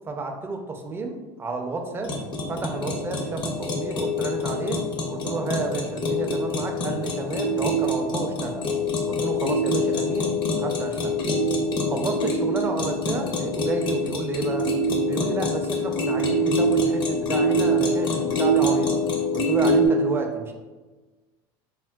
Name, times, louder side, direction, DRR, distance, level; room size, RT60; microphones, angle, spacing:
voice 1, 0.1-2.2 2.5-4.8 5.1-8.7 9.1-11.2 11.9-14.7 15.0-19.0 19.3-20.5, right 3 dB, 20° right, 4 dB, 0.4 m, -31 dB
sound 1, 2.0-19.9, equal, 40° left, 0.5 m, -25 dB
4.4 x 2.1 x 2.2 m, 1.3 s
supercardioid pair, 120°, 12 cm